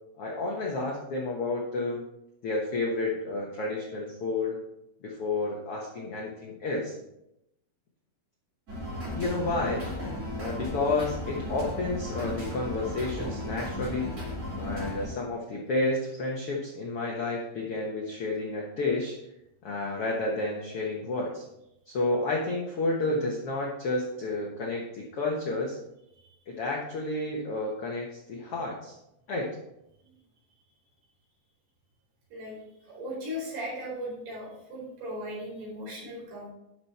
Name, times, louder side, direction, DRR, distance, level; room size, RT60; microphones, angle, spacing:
voice 1, 0.2-2.0 2.4-4.6 5.0-6.9 9.1-9.9 10.3-14.2 14.6-19.2 19.6-21.4 21.9-25.8 26.5-29.0 29.3-29.6, left 2 dB, 70° left, -2 dB, 1.3 m, -31 dB
sound 1, 8.7-15.1, left 1 dB, 20° right, 2.5 m, -35 dB
voice 2, 32.9-36.5, equal, 85° right, -5 dB, 6.5 m, -37 dB
11.5 x 6.1 x 4.2 m, 0.84 s
omnidirectional pair, 4.5 m